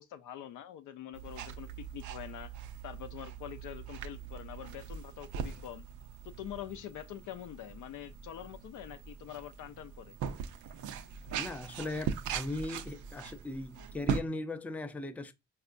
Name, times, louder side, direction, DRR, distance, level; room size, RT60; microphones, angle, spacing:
voice 1, 0.0-2.5 2.8-5.9 6.2-10.2, left 11 dB, 85° left, 0.6 m, -45 dB
sound 1, 1.1-14.2, right 7 dB, 75° right, 0.5 m, -41 dB
voice 2, 11.4-15.3, left 2 dB, 5° left, 0.4 m, -38 dB
4.4 x 2.4 x 2.5 m
cardioid pair, 90°, 30 cm